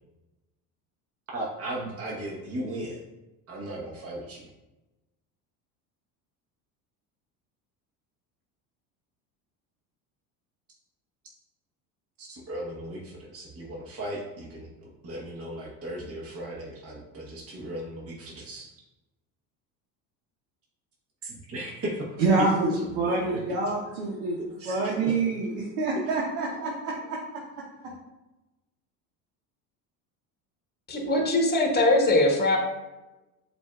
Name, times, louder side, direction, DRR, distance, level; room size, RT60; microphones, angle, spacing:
voice 1, 1.3-3.0 3.5-4.4 12.2-14.7 15.0-18.7 21.2-22.1 22.4-22.5 22.9-23.4 24.6-25.2 26.1-26.2, right 1 dB, 30° right, -3 dB, 1.0 m, -36 dB
voice 2, 22.2-24.4 24.7-27.2 27.8-27.9, right 3 dB, 80° right, -4 dB, 0.9 m, -26 dB
voice 3, 30.9-32.6, left 2 dB, 20° left, 1 dB, 1.1 m, -21 dB
6.9 x 2.6 x 2.2 m, 1.0 s
supercardioid pair, 90°, 44 cm